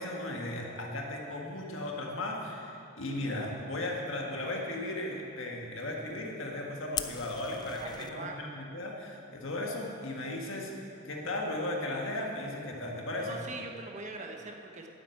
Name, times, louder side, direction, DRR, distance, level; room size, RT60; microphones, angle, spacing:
voice 1, 0.0-13.4, left 1 dB, 65° left, 0 dB, 1.7 m, -36 dB
Fire, 6.9-8.1, left 7 dB, 20° left, 0.3 m, -38 dB
voice 2, 7.8-8.4 13.2-14.9, right 2 dB, 35° right, 3 dB, 1.0 m, -42 dB
9.8 x 7.6 x 8.6 m, 2.6 s
head